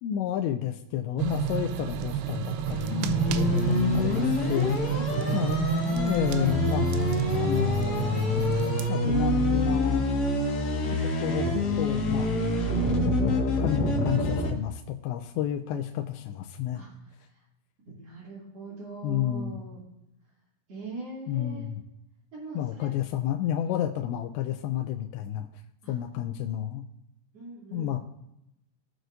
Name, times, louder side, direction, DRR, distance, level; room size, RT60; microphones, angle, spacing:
voice 1, 0.0-4.8 5.3-6.9 7.4-8.5 8.9-10.1 10.9-12.6 13.2-16.8 19.0-19.6 21.3-21.8 22.5-25.5 25.9-26.8 27.7-28.0, left 11 dB, 85° left, 5 dB, 2.8 m, -30 dB
sound 1, 1.2-8.9, right 11 dB, 85° right, 2.3 m, -31 dB
sound 2, 2.7-14.5, left 1 dB, 55° left, 2.2 m, -26 dB
voice 2, 4.6-5.9 16.7-17.4 18.0-19.8 20.7-21.7 22.3-23.0 25.8-25.9 27.3-28.0, right 3 dB, 40° right, -10 dB, 3.1 m, -42 dB
18.5 x 6.3 x 2.6 m, 0.85 s
omnidirectional pair, 5.2 m